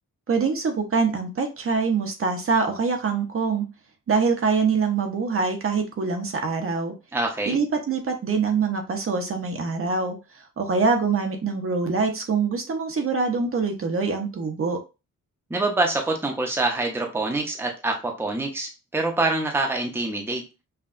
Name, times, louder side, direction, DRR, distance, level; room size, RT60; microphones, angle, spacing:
voice 1, 0.3-3.7 4.1-6.9 7.5-10.2 10.6-14.8, right 4 dB, 40° right, 4 dB, 0.7 m, -24 dB
voice 2, 7.1-7.6 15.5-20.4, right 2 dB, 5° right, 2 dB, 0.7 m, -25 dB
5.6 x 2.2 x 2.5 m, 0.28 s
wide cardioid pair, 150°, 32 cm